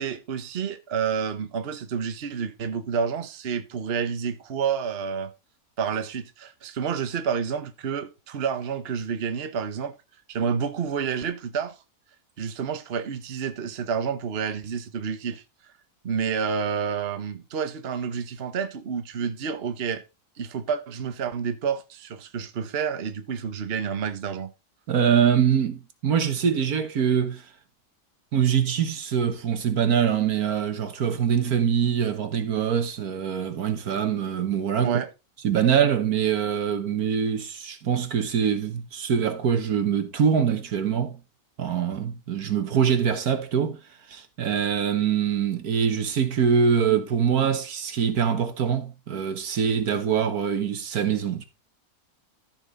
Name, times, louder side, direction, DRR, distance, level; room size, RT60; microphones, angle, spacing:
voice 1, 0.0-5.3 5.8-10.0 10.3-11.8 12.4-15.4 16.0-20.0 20.4-24.5 34.8-35.1 42.7-42.8, right 6 dB, 45° right, 1.2 m, -29 dB
voice 2, 24.9-27.4 28.3-35.0 35.4-41.2 41.6-43.8 44.1-51.4, right 7 dB, 75° right, 1.7 m, -24 dB
13.5 x 5.9 x 4.1 m
omnidirectional pair, 1.6 m